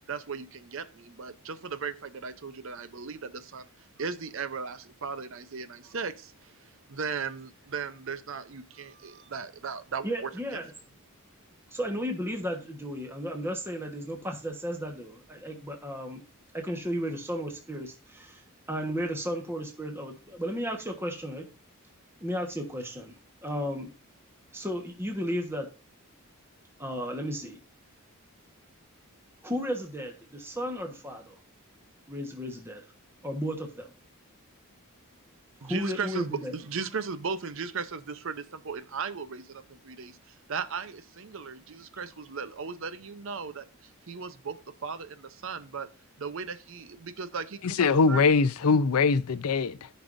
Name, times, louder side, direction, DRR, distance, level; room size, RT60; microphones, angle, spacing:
voice 1, 0.1-3.7 4.0-6.6 6.9-10.6 35.6-45.9 46.2-48.2, right 5 dB, 60° right, 0.7 m, -37 dB
voice 2, 10.0-10.7 11.7-16.2 16.5-21.5 22.2-23.9 24.5-25.7 26.8-27.6 29.4-31.4 32.1-32.8 33.2-33.9 35.6-36.6, equal, 10° right, 1.2 m, -34 dB
voice 3, 47.6-49.9, left 4 dB, 80° left, 0.5 m, -22 dB
14.0 x 5.4 x 2.6 m
head